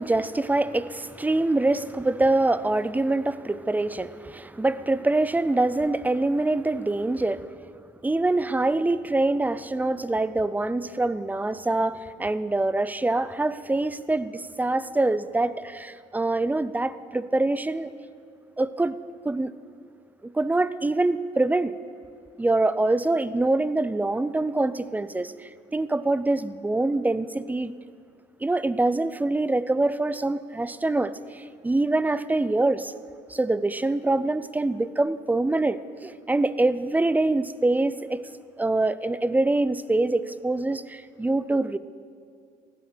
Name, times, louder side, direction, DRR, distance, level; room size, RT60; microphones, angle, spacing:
voice 1, 0.0-7.5 8.0-17.9 18.6-19.0 19.2-19.5 20.2-21.7 22.4-27.7 28.4-32.9 33.3-38.3 38.6-41.8, right 2 dB, 10° right, 15 dB, 0.5 m, -25 dB
15.5 x 12.0 x 6.7 m, 2.3 s
cardioid pair, 110°, 17 cm